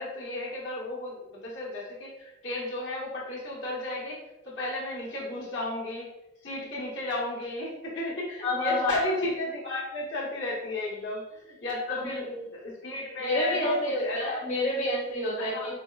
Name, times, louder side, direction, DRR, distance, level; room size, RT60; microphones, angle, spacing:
voice 1, 0.0-4.2 4.4-6.1 6.4-12.3 12.6-14.4 15.4-15.7, left 1 dB, 70° left, -5 dB, 1.0 m, -33 dB
voice 2, 8.4-8.9 11.9-12.4 13.2-15.7, left 1 dB, 40° left, -6 dB, 0.8 m, -29 dB
4.5 x 2.2 x 2.3 m, 0.93 s
head